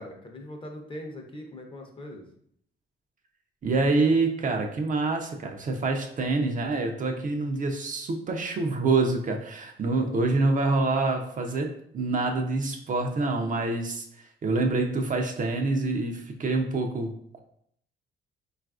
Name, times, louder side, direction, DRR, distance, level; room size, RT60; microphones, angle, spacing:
voice 1, 0.0-2.2, left 1 dB, 25° left, 2 dB, 0.6 m, -41 dB
voice 2, 3.6-14.1 14.4-17.1, right 3 dB, 40° right, 3 dB, 0.5 m, -26 dB
3.8 x 2.4 x 2.4 m, 0.67 s
cardioid pair, 90°, 20 cm